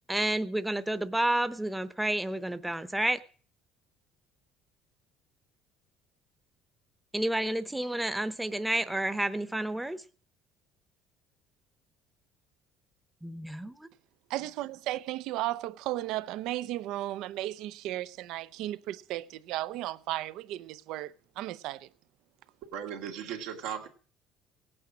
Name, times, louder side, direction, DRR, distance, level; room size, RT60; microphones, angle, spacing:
voice 1, 0.1-3.2 7.1-10.0 13.2-13.9, right 1 dB, 5° right, 0.8 m, -30 dB
voice 2, 14.3-21.9, right 15 dB, 70° right, 0.6 m, -35 dB
voice 3, 22.7-23.9, right 8 dB, 90° right, 2.1 m, -37 dB
17.0 x 8.7 x 6.2 m
cardioid pair, 130°, 0 cm